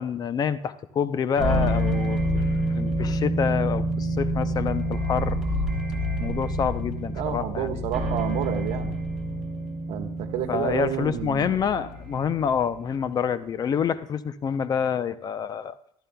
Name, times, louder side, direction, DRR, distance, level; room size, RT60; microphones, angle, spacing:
voice 1, 0.0-5.4 6.2-7.9 10.5-15.8, left 7 dB, 35° left, 14 dB, 0.6 m, -27 dB
sound 1, 1.4-12.7, right 1 dB, 5° right, 2.9 m, -28 dB
voice 2, 7.1-8.9 9.9-11.6, right 9 dB, 70° right, 6 dB, 1.3 m, -30 dB
15.0 x 13.5 x 2.3 m, 0.72 s
cardioid pair, 130°, 11 cm